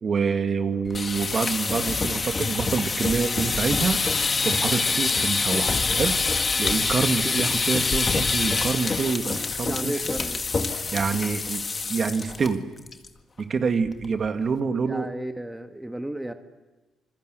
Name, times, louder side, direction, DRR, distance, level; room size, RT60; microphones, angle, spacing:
voice 1, 0.0-4.0 4.4-6.1 6.6-10.0 10.9-11.6 11.9-12.6 13.4-15.1, right 5 dB, 45° right, 7 dB, 1.9 m, -26 dB
sound 1, 0.8-12.5 12.8-13.1 13.4-13.5 13.9-14.3, left 4 dB, 35° left, 1.8 m, -26 dB
voice 2, 9.6-10.4 14.9-16.3, right 1 dB, 10° right, 7 dB, 1.4 m, -33 dB
26.5 x 20.5 x 8.1 m, 1.2 s
cardioid pair, 90°, 0 cm